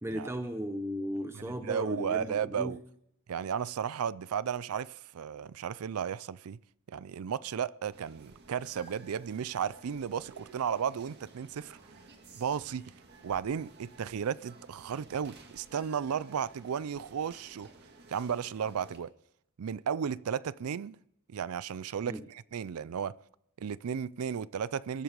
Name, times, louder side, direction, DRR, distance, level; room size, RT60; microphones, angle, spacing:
voice 1, 0.0-2.8 22.0-22.2, equal, 10° right, 0.8 m, -36 dB
voice 2, 1.3-2.8 3.3-6.6 6.9-11.8 12.3-12.8 13.2-17.7 18.1-19.1 19.6-21.0 21.3-23.2 23.6-25.0, right 7 dB, 90° right, 0.4 m, -34 dB
sound 1, 7.9-19.0, right 3 dB, 50° right, 1.9 m, -55 dB
22.0 x 7.8 x 5.2 m
head